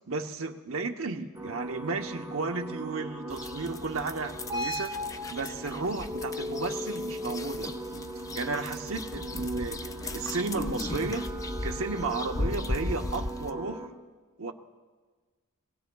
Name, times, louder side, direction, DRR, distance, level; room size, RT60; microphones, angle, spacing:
voice 1, 0.1-7.7 8.3-11.3 11.6-13.9 14.4-14.5, right 3 dB, 65° right, 4 dB, 0.9 m, -33 dB
sound 1, 1.3-13.9, equal, 15° right, 1.1 m, -38 dB
sound 2, 3.3-13.5, left 2 dB, 15° left, 0.4 m, -37 dB
24.5 x 17.0 x 2.3 m, 1.4 s
head